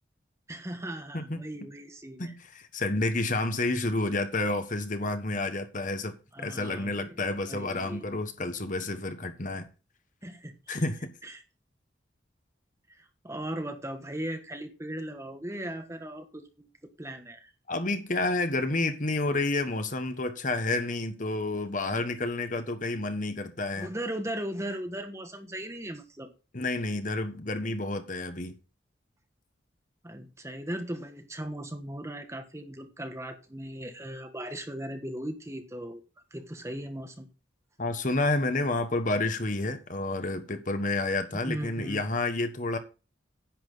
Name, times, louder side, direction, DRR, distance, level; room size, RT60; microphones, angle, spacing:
voice 1, 0.5-2.3 6.3-7.2 7.5-8.0 10.2-10.8 11.2-11.4 13.0-16.7 17.0-17.5 23.7-26.3 30.0-36.0 36.3-37.3 41.3-42.0, right 1 dB, 15° right, 1.5 m, -38 dB
voice 2, 1.1-1.7 2.2-9.7 10.7-11.1 17.7-23.9 26.5-28.6 37.8-42.8, left 2 dB, 45° left, 1.3 m, -30 dB
10.5 x 8.7 x 4.0 m
head